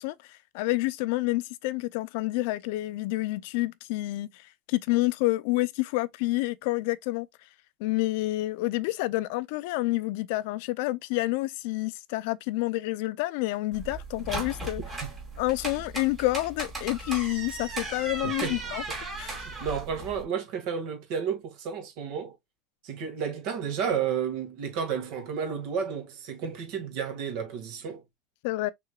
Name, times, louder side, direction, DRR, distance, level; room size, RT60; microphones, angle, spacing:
voice 1, 0.0-7.3 7.8-14.8 15.4-18.8 19.2-19.4 28.4-28.7, left 19 dB, 60° left, 0.4 m, -29 dB
sound 1, 13.7-20.2, right 2 dB, 15° right, 2.5 m, -37 dB
voice 2, 18.2-18.6 19.4-22.3 22.8-28.0, right 7 dB, 50° right, 1.9 m, -32 dB
5.8 x 3.8 x 2.3 m
cardioid pair, 175°, 0 cm